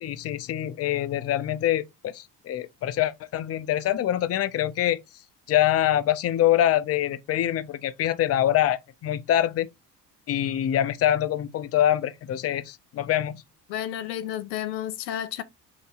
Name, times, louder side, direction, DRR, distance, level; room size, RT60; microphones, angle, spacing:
voice 1, 0.0-5.0 5.5-9.7 10.3-13.4, left 12 dB, 30° left, 0.5 m, -25 dB
voice 2, 13.7-15.4, left 11 dB, 90° left, 0.6 m, -31 dB
5.7 x 2.7 x 2.9 m
hypercardioid pair, 55°, 49 cm